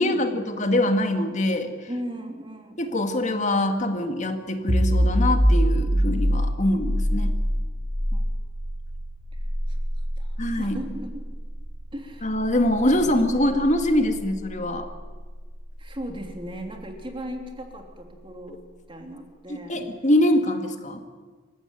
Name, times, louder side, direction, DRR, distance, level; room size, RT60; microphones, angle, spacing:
voice 1, 0.0-1.7 2.8-7.3 10.4-10.8 12.2-14.9 19.5-21.0, left 1 dB, 40° left, 6 dB, 2.0 m, -23 dB
voice 2, 1.9-2.8 6.6-6.7 8.1-8.2 9.7-9.8 10.2-11.1 11.9-12.3 13.0-13.2 15.8-18.6 18.9-19.8, equal, 25° right, 3 dB, 3.0 m, -37 dB
sound 1, 4.7-16.1, equal, 85° right, 6.0 m, -26 dB
26.0 x 15.5 x 9.2 m, 1.5 s
head